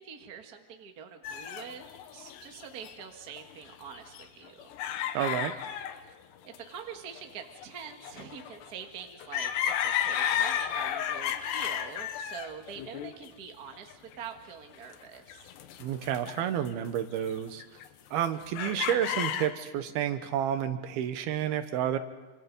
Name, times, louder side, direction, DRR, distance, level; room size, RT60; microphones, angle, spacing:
voice 1, 0.0-1.8 2.1-4.7 6.4-15.5, right 7 dB, 60° right, 4 dB, 1.0 m, -45 dB
sound 1, 1.2-3.0 3.4-6.0 6.5-6.7 7.1-14.1 14.7-15.0 15.3-16.7 17.0-17.9 18.2-19.5, left 10 dB, 90° left, 3.3 m, -33 dB
voice 2, 5.1-5.5 15.8-17.6 18.1-22.0, right 10 dB, 75° right, 10 dB, 2.8 m, -30 dB
26.5 x 26.0 x 5.3 m, 1.2 s
omnidirectional pair, 4.8 m